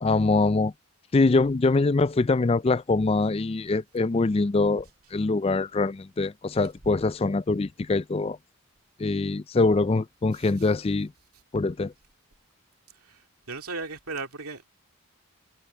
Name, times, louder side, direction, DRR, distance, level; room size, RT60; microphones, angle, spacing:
voice 1, 0.0-0.7 1.1-4.9 5.1-8.4 9.0-11.1 11.5-11.9, left 3 dB, 25° left, 0.3 m, -23 dB
voice 2, 10.3-10.7 12.9-14.7, right 3 dB, 85° right, 2.5 m, -37 dB
head